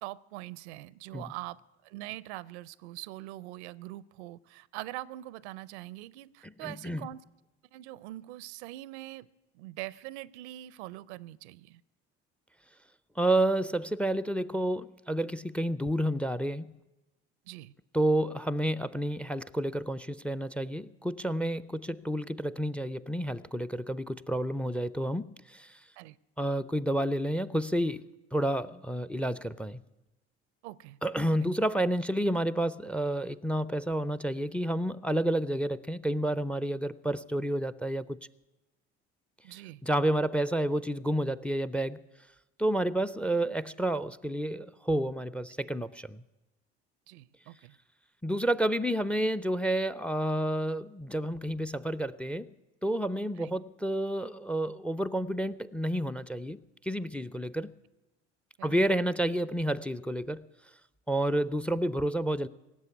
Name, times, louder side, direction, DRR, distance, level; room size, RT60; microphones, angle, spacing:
voice 1, 0.0-7.2 7.7-9.3 9.5-11.8 17.5-17.7 26.0-26.2 30.6-31.0 31.4-31.5 39.4-39.8 47.1-47.8 53.4-53.5 58.6-58.8, right 17 dB, 80° right, 0.5 m, -43 dB
voice 2, 6.4-7.1 13.2-16.7 17.9-25.8 26.4-29.8 31.0-38.2 39.8-42.0 42.6-46.2 48.2-52.5 52.8-57.7 58.6-60.4 61.1-62.5, right 1 dB, 5° left, 0.4 m, -30 dB
17.5 x 7.6 x 9.5 m
hypercardioid pair, 65°, 33 cm